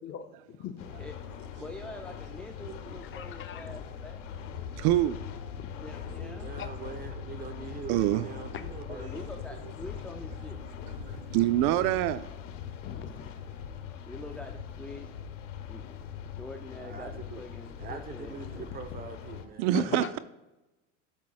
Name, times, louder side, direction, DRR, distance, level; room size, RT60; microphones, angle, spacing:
voice 1, 0.0-0.9 3.1-3.6 5.6-5.7 6.6-6.7 8.5-8.7 12.8-13.3 19.7-20.1, left 9 dB, 35° left, 0.6 m, -39 dB
sound 1, 0.8-19.5, left 8 dB, 90° left, 0.9 m, -41 dB
voice 2, 1.6-4.2 5.7-6.5 8.9-10.6 14.0-15.1 15.7-19.1, left 2 dB, 5° left, 0.3 m, -45 dB
voice 3, 4.8-5.2 7.9-8.3 11.0-12.3 19.6-20.2, right 14 dB, 60° right, 0.4 m, -26 dB
voice 4, 6.1-9.3 16.8-17.4 17.8-20.2, right 5 dB, 25° right, 0.9 m, -43 dB
10.5 x 6.0 x 2.4 m
supercardioid pair, 100°, 37 cm